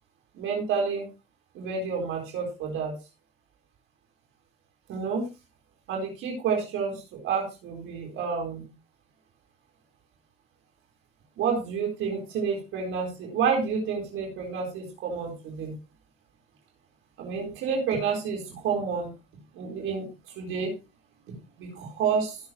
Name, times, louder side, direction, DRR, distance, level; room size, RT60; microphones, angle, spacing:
voice 1, 0.3-1.0 1.5-2.9 4.9-5.2 5.9-8.6 11.4-15.7 17.2-19.1 19.5-20.1 20.4-20.7 21.6-22.4, right 6 dB, 85° right, 0 dB, 4.3 m, -29 dB
17.0 x 7.3 x 3.0 m, 0.28 s
cardioid pair, 90°, 20 cm